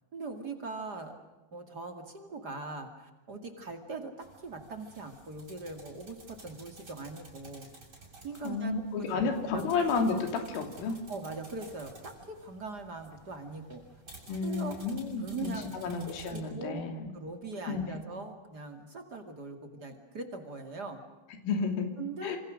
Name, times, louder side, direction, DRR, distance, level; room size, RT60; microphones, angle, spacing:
voice 1, 0.1-1.2 1.5-7.7 8.2-9.7 11.1-13.8 14.4-14.8 15.2-15.8 16.3-21.0 22.0-22.4, right 3 dB, 45° right, 5 dB, 1.3 m, -41 dB
sound 1, 4.2-16.4, right 3 dB, 20° right, 7.4 m, -53 dB
voice 2, 8.4-11.0 14.3-15.5 15.8-17.1 17.7-18.0 21.4-21.9 22.2-22.4, left 4 dB, 85° left, 5 dB, 5.5 m, -31 dB
27.0 x 27.0 x 6.4 m, 1.1 s
omnidirectional pair, 5.6 m